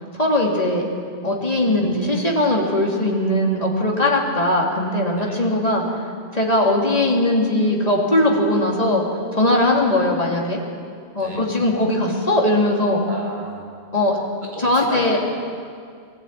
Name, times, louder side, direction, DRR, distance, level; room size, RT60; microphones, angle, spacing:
voice 1, 0.1-0.8 1.2-5.8 6.3-9.0 9.3-10.6 11.1-13.0 13.9-14.2 14.6-15.2, left 1 dB, 35° left, -2 dB, 3.0 m, -19 dB
voice 2, 13.0-13.7 14.5-15.2, right 1 dB, 45° right, -4 dB, 4.2 m, -34 dB
21.5 x 14.0 x 9.0 m, 2.3 s
omnidirectional pair, 1.1 m